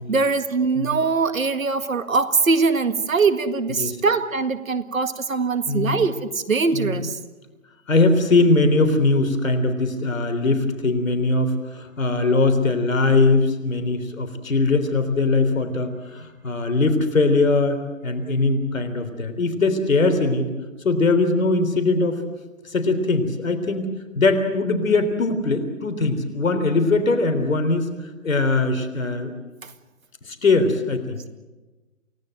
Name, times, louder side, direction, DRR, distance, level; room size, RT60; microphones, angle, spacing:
voice 1, 0.1-7.2 29.6-29.7, right 4 dB, 85° right, 1.9 m, -22 dB
voice 2, 5.7-6.0 6.7-7.0 7.9-20.5 20.8-22.2 22.7-27.8 28.2-29.3 30.2-31.2, left 3 dB, 80° left, 3.7 m, -21 dB
28.5 x 18.0 x 7.8 m
hypercardioid pair, 135°, 40 cm